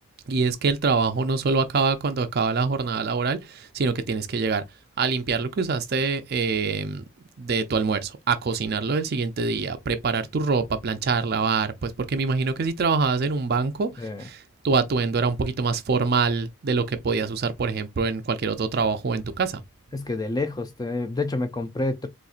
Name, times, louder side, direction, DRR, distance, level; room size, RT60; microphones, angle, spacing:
voice 1, 0.3-4.6 5.0-7.0 7.4-13.9 14.2-19.6, right 4 dB, 45° right, 0.4 m, -25 dB
voice 2, 19.9-22.1, left 2 dB, 20° left, 0.4 m, -28 dB
4.1 x 2.4 x 2.4 m
head